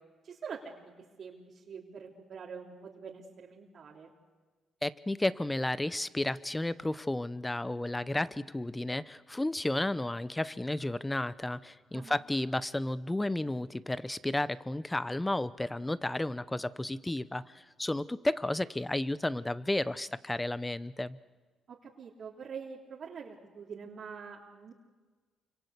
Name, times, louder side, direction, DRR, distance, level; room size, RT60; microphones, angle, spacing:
voice 1, 0.2-0.9 1.2-4.1 11.9-12.2 21.7-24.7, right 6 dB, 55° right, -3 dB, 3.3 m, -45 dB
voice 2, 4.8-21.2, left 1 dB, 10° left, 16 dB, 0.8 m, -32 dB
28.0 x 25.5 x 8.2 m, 1.4 s
cardioid pair, 90°, 0 cm